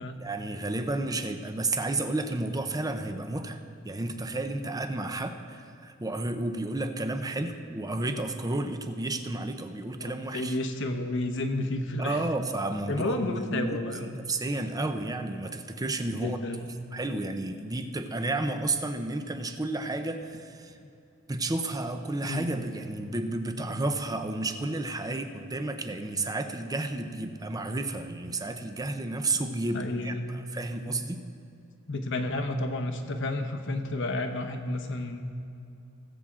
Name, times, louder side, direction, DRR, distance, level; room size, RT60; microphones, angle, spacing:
voice 1, 0.2-10.5 12.0-16.4 16.9-20.8 21.3-31.2, right 2 dB, 15° right, 7 dB, 0.7 m, -32 dB
voice 2, 10.0-12.2 12.9-14.1 16.1-16.7 22.3-22.6 29.7-30.3 31.9-35.2, left 2 dB, 60° left, 6 dB, 1.0 m, -31 dB
19.5 x 7.5 x 3.7 m, 2.6 s
head